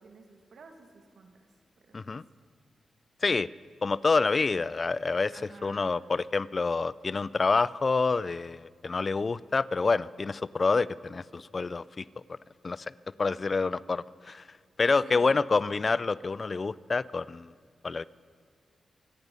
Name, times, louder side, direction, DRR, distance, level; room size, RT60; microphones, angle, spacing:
voice 1, 0.0-1.5 1.8-2.2 5.3-5.9 15.0-15.4, right 4 dB, 70° right, 5 dB, 2.1 m, -51 dB
voice 2, 3.8-5.3 5.6-12.0 12.6-12.9 13.2-14.4 14.8-17.5 17.8-18.0, left 4 dB, 45° left, 20 dB, 0.4 m, -27 dB
25.5 x 9.5 x 5.4 m, 2.1 s
cardioid pair, 50°, 0 cm